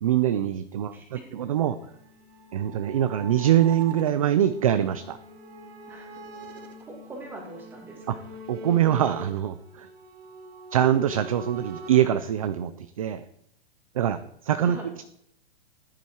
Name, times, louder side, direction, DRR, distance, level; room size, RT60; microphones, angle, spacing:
voice 1, 0.0-1.8 2.5-5.2 8.1-8.2 8.5-9.9 10.7-13.2 13.9-15.0, right 10 dB, 35° right, 12 dB, 0.5 m, -24 dB
voice 2, 0.9-1.3 5.9-6.1 6.9-8.2 14.6-14.9, right 2 dB, 5° right, 1 dB, 2.1 m, -43 dB
sound 1, 1.4-12.1, right 2 dB, 90° right, 2.9 m, -43 dB
14.0 x 10.0 x 4.5 m, 0.71 s
hypercardioid pair, 175°, 30 cm